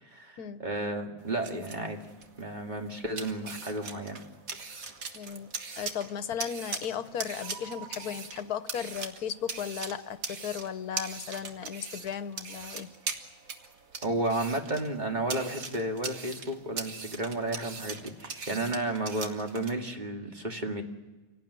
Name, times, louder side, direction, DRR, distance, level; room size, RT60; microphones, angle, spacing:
voice 1, 0.0-2.0 2.4-4.2 14.0-20.8, right 2 dB, 30° right, 2 dB, 2.3 m, -32 dB
sound 1, 1.2-19.7, right 4 dB, 65° right, 2.1 m, -41 dB
voice 2, 5.1-5.5 5.8-12.9, left 8 dB, 85° left, 12 dB, 1.5 m, -36 dB
sound 2, 7.4-8.8 12.5-12.8, right 7 dB, 50° right, 5.5 m, -49 dB
27.0 x 18.0 x 9.5 m, 1.2 s
omnidirectional pair, 1.6 m